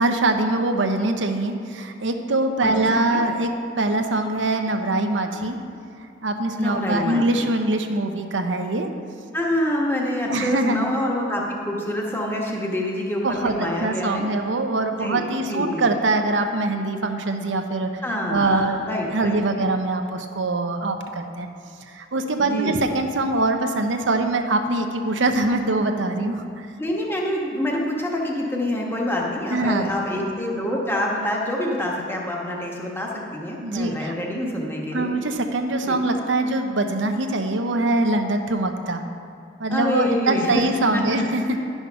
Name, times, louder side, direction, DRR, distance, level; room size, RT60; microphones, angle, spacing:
voice 1, 0.0-3.5 3.8-5.6 6.2-8.9 10.3-10.8 13.2-13.5 13.8-17.9 18.3-18.8 19.0-21.5 21.9-26.7 29.5-30.0 33.6-34.1 34.9-39.0 39.6-41.4, right 2 dB, 90° right, 5 dB, 0.8 m, -23 dB
voice 2, 2.3-3.2 6.6-7.5 9.3-14.2 15.0-15.9 18.0-19.7 22.4-22.8 26.8-35.1 35.8-36.0 39.7-41.3, left 1 dB, 15° left, -2 dB, 1.2 m, -26 dB
11.0 x 5.8 x 5.7 m, 2.5 s
head